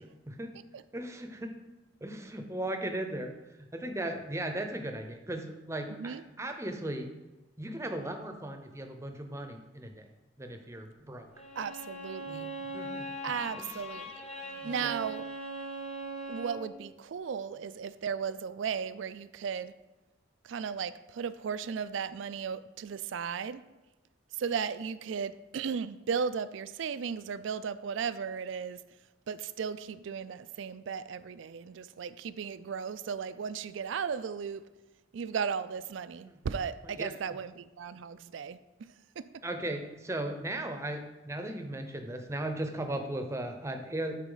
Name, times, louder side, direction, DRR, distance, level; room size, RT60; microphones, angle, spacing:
voice 1, 0.9-1.6 2.0-3.3 3.7-7.1 7.6-10.0 10.4-11.3 12.3-13.1 13.6-13.7 14.5-14.9 37.0-37.1 39.4-44.2, right 1 dB, 15° right, 5 dB, 0.7 m, -37 dB
voice 2, 5.9-6.2 11.6-12.5 13.2-14.1 14.6-15.3 16.3-19.7 20.4-23.6 24.3-28.8 29.3-34.7 35.1-39.4, right 6 dB, 70° right, 14 dB, 0.4 m, -36 dB
Bowed string instrument, 11.3-16.7, right 1 dB, 30° left, 1.1 m, -40 dB
12.0 x 4.2 x 3.9 m, 1.1 s
head